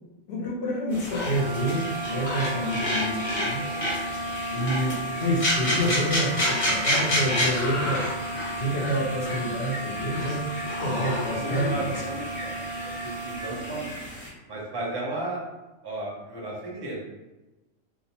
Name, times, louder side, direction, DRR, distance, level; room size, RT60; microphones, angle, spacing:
voice 1, 0.3-3.6 4.5-8.0 8.5-10.5 10.8-12.0, equal, 60° left, -4 dB, 0.9 m, -28 dB
sound 1, 0.9-14.3, left 1 dB, 35° left, 0.6 m, -30 dB
sound 2, 1.3-14.0, right 2 dB, 85° right, 1.0 m, -35 dB
voice 2, 3.6-3.9 10.8-12.5 12.8-14.0 14.5-15.4 15.8-17.0, right 2 dB, 30° right, -5 dB, 0.5 m, -34 dB
2.5 x 2.0 x 2.8 m, 1.1 s
omnidirectional pair, 1.3 m